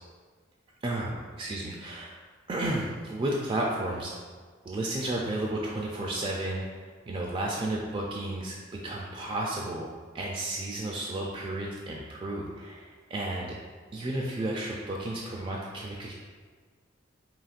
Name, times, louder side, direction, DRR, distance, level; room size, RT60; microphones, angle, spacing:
voice 1, 0.8-2.1 2.5-4.1 4.6-9.9 10.1-13.5 13.9-16.1, right 1 dB, 30° right, -2 dB, 0.3 m, -32 dB
5.6 x 2.9 x 2.4 m, 1.5 s
head